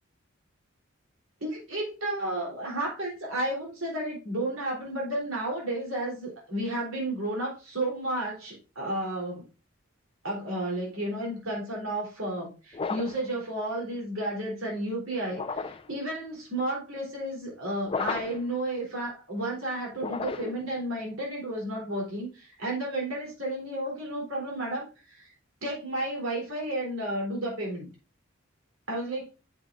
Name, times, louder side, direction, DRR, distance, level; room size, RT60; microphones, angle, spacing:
voice 1, 1.4-9.4 10.2-25.3 25.6-27.9 28.9-29.3, right 1 dB, 80° right, 3.5 m, -32 dB
sound 1, 12.7-13.3 15.3-15.9 17.8-18.5 19.9-20.7, left 4 dB, 25° left, 0.3 m, -33 dB
8.2 x 7.3 x 2.5 m
head